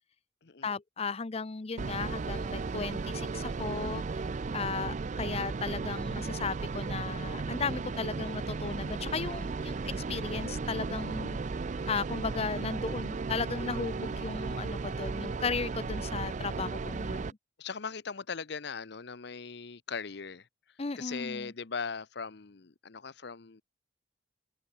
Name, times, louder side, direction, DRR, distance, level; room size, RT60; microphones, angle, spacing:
voice 1, 0.6-4.2 4.5-11.4 11.9-17.4 20.8-21.5, left 4 dB, 35° left, 0.6 m, -36 dB
sound 1, 1.8-17.3, right 4 dB, 40° right, 0.4 m, -35 dB
voice 2, 17.6-20.5 21.0-23.6, left 5 dB, 65° left, 0.9 m, -39 dB
head